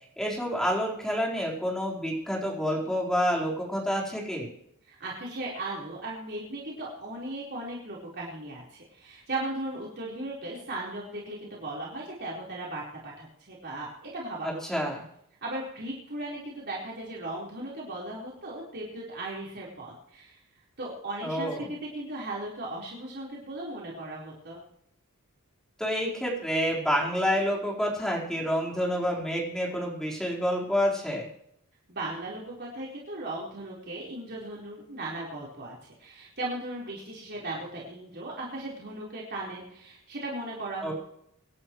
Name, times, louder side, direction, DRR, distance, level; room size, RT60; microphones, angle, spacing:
voice 1, 0.2-4.5 14.4-15.0 21.2-21.7 25.8-31.3 40.8-40.9, equal, ahead, -3 dB, 4.3 m, -28 dB
voice 2, 4.9-14.6 15.4-20.4 20.8-24.6 31.9-40.9, right 2 dB, 50° right, -4 dB, 4.3 m, -37 dB
25.0 x 12.0 x 3.2 m, 0.74 s
head